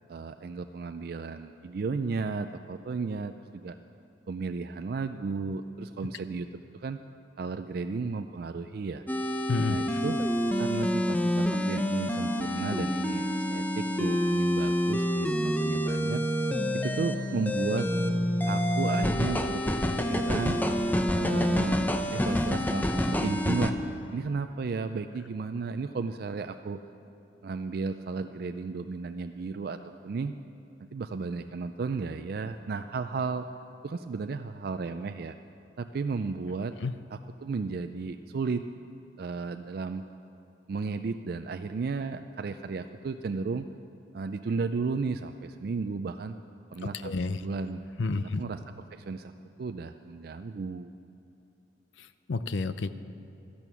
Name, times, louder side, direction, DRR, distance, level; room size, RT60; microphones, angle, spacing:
voice 1, 0.1-3.8 4.3-6.5 6.7-7.0 7.4-9.0 9.7-10.2 10.6-16.2 16.7-17.9 18.5-20.6 21.1-21.8 22.1-23.7 24.1-26.8 27.4-30.3 30.9-33.5 33.8-35.4 35.8-36.7 37.1-38.7 39.2-40.0 40.7-43.7 44.1-46.4 46.7-47.1 47.4-47.8 48.2-48.6 48.9-49.3 49.6-50.9, right 4 dB, 55° right, 8 dB, 0.4 m, -34 dB
sound 1, 9.1-23.7, equal, 10° left, 0.6 m, -27 dB
voice 2, 9.5-10.0 36.8-36.9 47.0-47.4 48.0-48.4 52.0-52.9, left 3 dB, 80° left, 13 dB, 0.5 m, -30 dB
13.0 x 11.0 x 6.9 m, 2.9 s
head